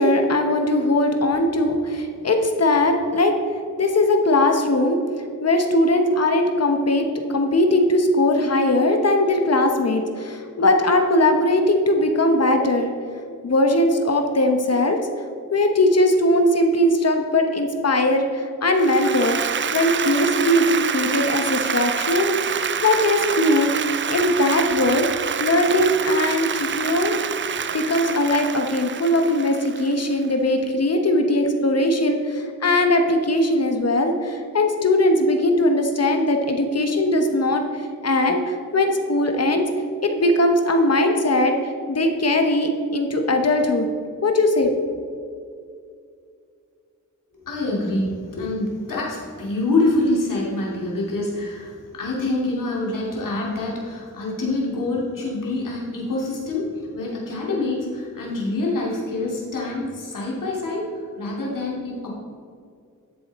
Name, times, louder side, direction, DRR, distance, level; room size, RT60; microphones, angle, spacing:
voice 1, 0.0-3.3 3.8-5.0 5.4-12.9 13.4-15.0 15.5-19.4 19.7-25.1 25.4-27.2 27.7-39.6 40.0-43.9 44.2-44.7, left 1 dB, 50° left, 5 dB, 1.0 m, -20 dB
Applause, 18.8-30.1, right 7 dB, 35° right, 0.4 m, -27 dB
voice 2, 47.3-62.1, left 2 dB, 75° left, -4 dB, 2.7 m, -26 dB
12.0 x 7.2 x 4.2 m, 2.3 s
wide cardioid pair, 95°, 33 cm